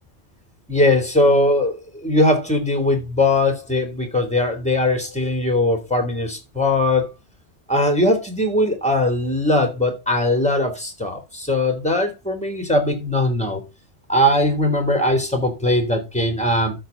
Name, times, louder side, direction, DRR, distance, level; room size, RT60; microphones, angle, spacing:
voice 1, 0.7-7.1 7.7-13.6 14.1-16.7, left 1 dB, 5° left, 3.2 m, -20 dB
13.0 x 6.5 x 3.9 m
omnidirectional pair, 1.2 m